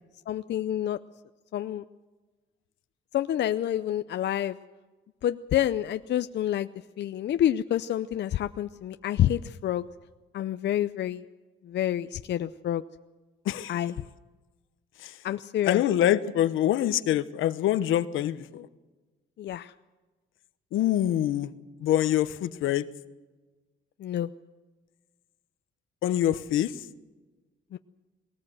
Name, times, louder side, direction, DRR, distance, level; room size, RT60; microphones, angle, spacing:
voice 1, 0.3-1.0 1.5-1.8 3.1-4.6 5.2-6.7 7.0-9.9 10.3-11.2 11.6-12.8 13.7-13.9 15.2-15.8 19.4-19.7 24.0-24.3 27.7-27.8, left 11 dB, 60° left, 10 dB, 0.6 m, -28 dB
voice 2, 13.4-13.8 15.0-15.2 15.6-18.7 20.7-21.5 21.8-22.8 26.0-26.7, left 12 dB, 85° left, 13 dB, 1.0 m, -25 dB
21.0 x 18.5 x 7.8 m, 1.2 s
cardioid pair, 90°, 20 cm